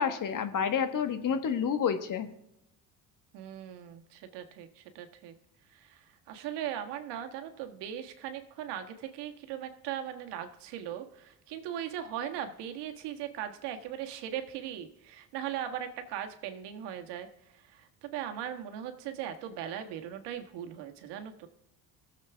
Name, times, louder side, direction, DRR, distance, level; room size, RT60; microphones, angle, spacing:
voice 1, 0.0-2.3, left 7 dB, 45° left, 9 dB, 1.5 m, -29 dB
voice 2, 3.3-5.3 5.7-21.5, right 10 dB, 70° right, 6 dB, 1.7 m, -39 dB
18.5 x 7.5 x 3.5 m, 0.83 s
supercardioid pair, 75°, 42 cm